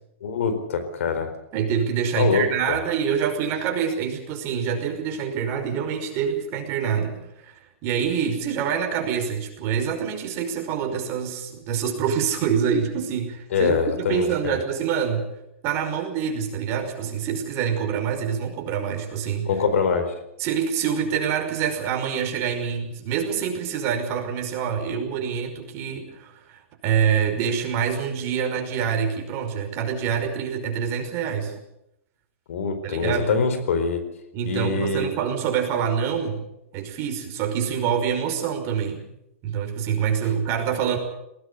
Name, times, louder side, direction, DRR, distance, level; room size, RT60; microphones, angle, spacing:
voice 1, 0.2-1.3 2.2-2.8 13.5-14.6 19.4-20.1 32.5-34.0 34.4-35.1, left 5 dB, 70° left, 9 dB, 4.4 m, -24 dB
voice 2, 1.5-15.3 15.6-19.5 20.4-31.5 32.8-33.3 34.3-36.4 36.7-39.1 39.4-41.0, right 7 dB, 35° right, 4 dB, 5.4 m, -26 dB
20.5 x 18.5 x 8.4 m, 0.83 s
hypercardioid pair, 135°, 8 cm